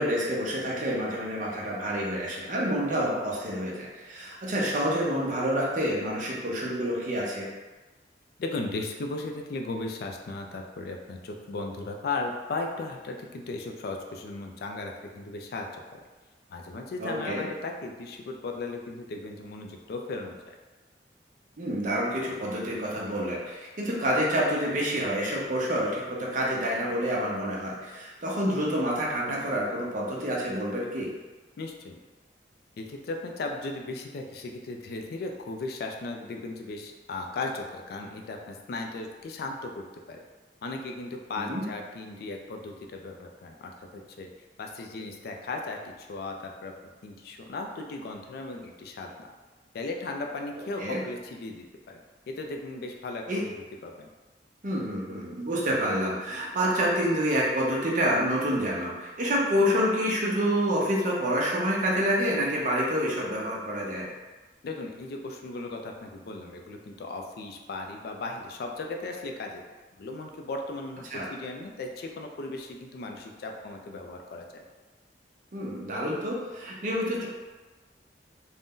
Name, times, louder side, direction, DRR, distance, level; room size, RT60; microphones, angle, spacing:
voice 1, 0.0-7.5 17.0-17.4 21.6-31.1 41.4-41.6 50.8-51.0 53.3-53.4 54.6-64.1 71.1-71.3 75.5-77.3, equal, 45° right, -4 dB, 0.6 m, -28 dB
voice 2, 8.4-15.7 15.9-16.0 16.5-20.5 31.6-32.0 32.8-40.3 40.6-44.3 44.6-46.7 47.0-49.3 49.7-52.0 52.3-53.5 53.8-54.1 64.6-69.6 70.0-74.6, left 3 dB, 60° left, 2 dB, 0.3 m, -36 dB
2.5 x 2.1 x 3.6 m, 1.2 s
head